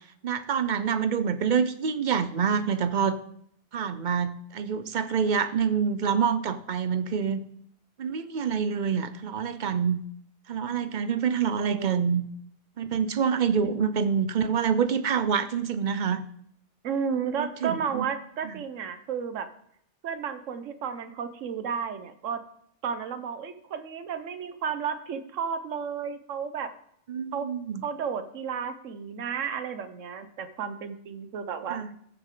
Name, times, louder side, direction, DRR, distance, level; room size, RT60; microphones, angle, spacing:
voice 1, 0.2-3.2 3.7-7.4 8.0-10.0 10.5-12.2 12.8-16.2 17.4-18.1 27.1-27.8 31.7-31.9, right 7 dB, 50° right, 12 dB, 0.6 m, -26 dB
voice 2, 11.5-12.1 13.6-13.7 16.8-19.5 20.0-22.4 22.8-26.7 27.3-27.5 27.8-31.8, right 7 dB, 85° right, 10 dB, 1.2 m, -32 dB
14.5 x 6.6 x 3.7 m, 0.69 s
omnidirectional pair, 1.3 m